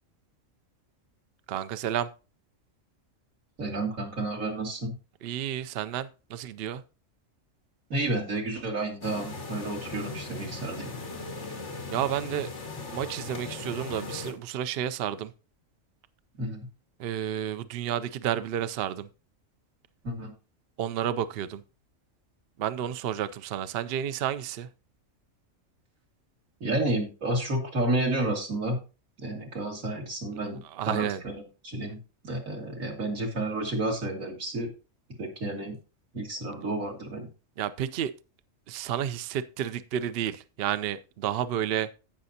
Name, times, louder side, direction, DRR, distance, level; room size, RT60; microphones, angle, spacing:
voice 1, 1.5-2.1 5.2-6.8 11.9-12.5 12.9-15.3 17.0-19.1 20.8-21.6 22.6-24.7 30.7-31.2 37.6-38.1 38.7-41.9, right 10 dB, 60° right, 0.7 m, -31 dB
voice 2, 3.6-4.9 7.9-10.9 16.4-16.7 20.0-20.3 26.6-28.8 29.2-30.6 30.9-32.0 32.2-34.7 35.2-35.8 36.1-37.3, right 2 dB, 85° right, 2.7 m, -31 dB
sound 1, 9.0-14.3, left 3 dB, 60° left, 2.2 m, -38 dB
16.0 x 6.1 x 2.8 m
omnidirectional pair, 1.4 m